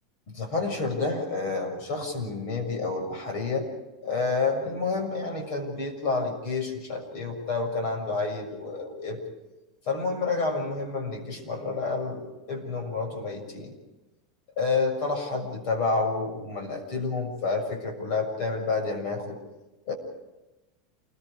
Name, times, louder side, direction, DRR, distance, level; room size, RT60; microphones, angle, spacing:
voice 1, 0.3-3.7 4.0-9.2 9.8-13.7 14.6-19.4 19.9-20.0, left 3 dB, 50° left, 4 dB, 6.7 m, -29 dB
29.0 x 21.5 x 5.0 m, 1.0 s
supercardioid pair, 160°, 2 cm